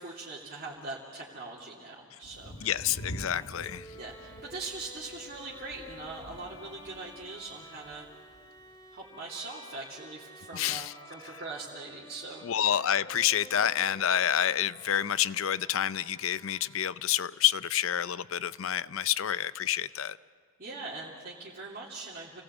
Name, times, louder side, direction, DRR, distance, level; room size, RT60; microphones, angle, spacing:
voice 1, 0.0-2.8 3.3-3.5 3.9-8.1 8.9-12.7 20.6-22.4, right 3 dB, 45° right, -5 dB, 2.7 m, -42 dB
Thunder, 2.2-9.0, equal, 85° left, 1.5 m, -47 dB
voice 2, 2.6-3.9 10.5-10.9 12.4-20.2, left 10 dB, 65° left, 17 dB, 0.5 m, -28 dB
Bowed string instrument, 2.6-17.1, equal, 20° left, 3.6 m, -52 dB
29.0 x 18.5 x 8.1 m, 2.2 s
head